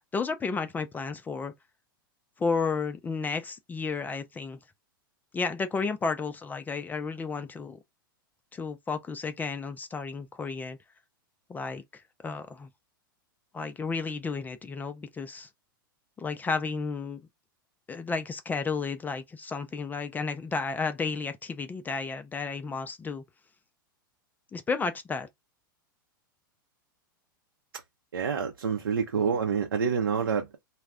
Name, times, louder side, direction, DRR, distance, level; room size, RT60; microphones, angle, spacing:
voice 1, 0.1-1.5 2.4-4.6 5.3-7.8 8.5-10.8 11.5-12.7 13.5-15.5 16.2-17.2 17.9-23.2 24.5-25.3, left 4 dB, 15° left, 0.4 m, -32 dB
voice 2, 28.1-30.6, right 6 dB, 80° right, 0.6 m, -27 dB
2.3 x 2.1 x 3.5 m
hypercardioid pair, 100°, 12 cm